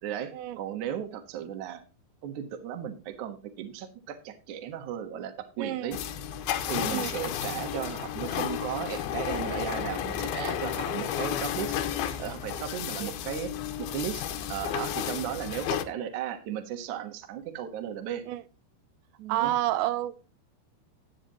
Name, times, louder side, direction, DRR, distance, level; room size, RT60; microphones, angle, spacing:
voice 1, 0.0-1.8 2.2-6.0 6.7-11.8 12.2-13.5 13.8-18.3 19.2-19.6, right 9 dB, 60° right, 7 dB, 2.1 m, -36 dB
voice 2, 5.6-6.0 6.9-7.1 11.0-11.1 13.0-13.1 18.3-18.4 19.3-20.2, right 14 dB, 80° right, 13 dB, 2.9 m, -29 dB
sound 1, 5.9-15.8, left 10 dB, 75° left, 2.5 m, -32 dB
13.5 x 9.0 x 3.0 m, 0.33 s
omnidirectional pair, 5.3 m